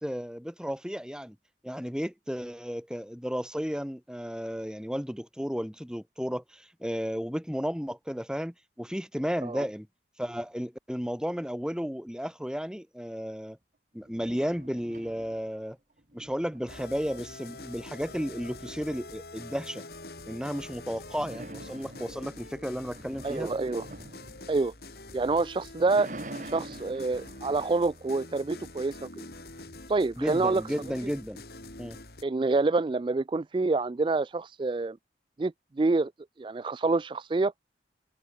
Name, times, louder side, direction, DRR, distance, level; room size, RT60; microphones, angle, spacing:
voice 1, 0.0-1.4 1.6-9.9 10.2-13.6 13.9-15.8 16.1-19.8 20.3-23.5 30.2-31.4 31.8-32.0, equal, 5° right, 1.8 m, -33 dB
sound 1, 14.0-15.6 16.0-18.7 21.1-25.2 25.6-28.7, right 1 dB, 45° right, 2.0 m, -46 dB
sound 2, 16.7-32.2, left 2 dB, 55° left, 4.2 m, -45 dB
voice 2, 23.2-23.9 24.5-24.7 25.1-26.1 26.4-29.2 29.9-30.6 32.2-35.0 35.4-36.1 36.4-37.5, right 3 dB, 25° right, 0.3 m, -27 dB
head